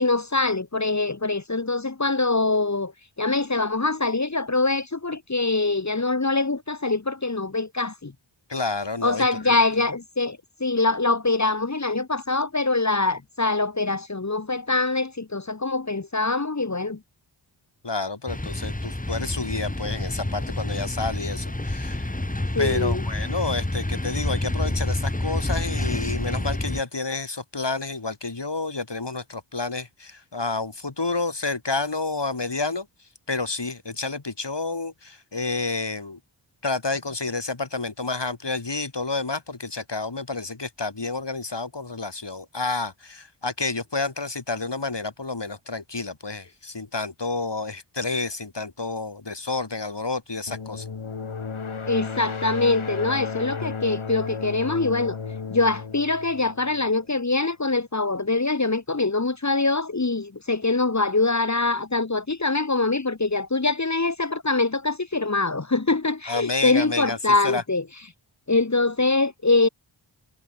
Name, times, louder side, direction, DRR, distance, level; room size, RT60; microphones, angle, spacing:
voice 1, 0.0-2.9 3.2-8.1 9.0-17.0 22.5-23.0 51.9-55.2 55.5-67.8 68.5-69.7, left 3 dB, 35° left, 1.5 m, -24 dB
voice 2, 8.5-9.6 17.8-22.1 22.6-32.9 33.3-36.2 36.6-50.9 53.6-53.7 66.3-67.2 67.4-67.6, left 3 dB, 55° left, 7.0 m, -30 dB
sound 1, 18.3-26.8, left 1 dB, 15° left, 2.4 m, -28 dB
sound 2, 50.5-57.1, left 5 dB, 75° left, 2.5 m, -34 dB
wide cardioid pair, 55°, 49 cm